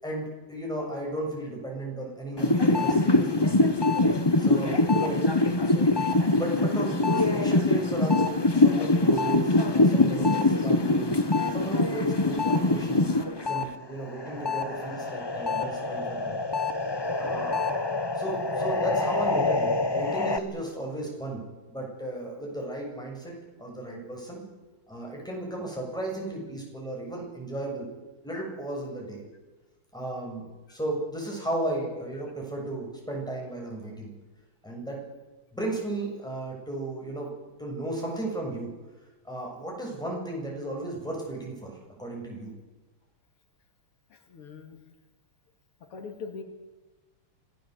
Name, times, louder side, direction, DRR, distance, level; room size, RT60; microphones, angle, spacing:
voice 1, 0.0-3.6 4.4-5.2 5.7-5.9 6.3-11.2 11.5-13.2 13.5-16.4 17.2-17.6 18.2-21.4 21.7-24.4 24.9-27.9 28.2-29.2 29.9-34.1 34.6-35.0 35.5-37.3 37.6-38.7 39.2-42.5, right 2 dB, ahead, -2 dB, 7.4 m, -35 dB
sound 1, 2.4-13.7 14.0-20.4, left 2 dB, 25° left, 0.6 m, -24 dB
voice 2, 44.1-44.8 45.9-46.4, left 5 dB, 85° left, 4 dB, 3.4 m, -41 dB
26.0 x 17.5 x 8.1 m, 1.1 s
omnidirectional pair, 2.4 m